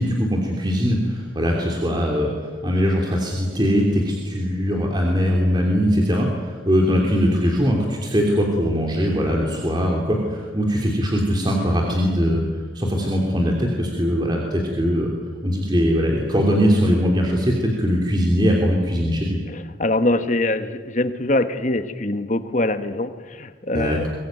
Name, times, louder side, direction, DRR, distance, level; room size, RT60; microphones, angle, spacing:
voice 1, 0.0-12.4 12.7-15.1 15.4-19.4 23.7-24.0, equal, 20° right, 0 dB, 3.1 m, -21 dB
voice 2, 19.5-24.1, left 2 dB, 40° left, 10 dB, 1.4 m, -23 dB
23.5 x 21.5 x 9.2 m, 1.5 s
head